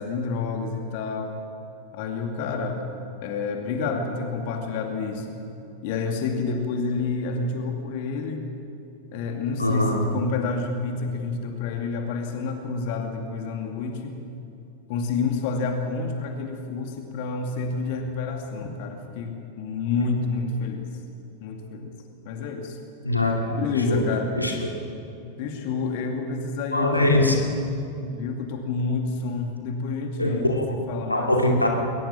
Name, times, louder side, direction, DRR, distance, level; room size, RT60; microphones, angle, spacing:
voice 1, 0.0-1.4 1.9-2.8 3.2-5.4 5.8-8.5 9.1-14.2 14.9-20.9 21.4-21.9 22.3-22.8 23.6-24.3 25.4-27.4 28.1-31.3, left 4 dB, 50° left, 4 dB, 2.3 m, -29 dB
voice 2, 9.6-10.0 23.0-23.6 23.9-24.0 24.4-24.5 26.7-27.4 28.0-28.1 30.2-30.6 31.1-31.7, left 1 dB, 85° left, 1 dB, 2.6 m, -22 dB
22.0 x 19.5 x 7.3 m, 2.8 s
figure-of-eight pair, 90°, 0 cm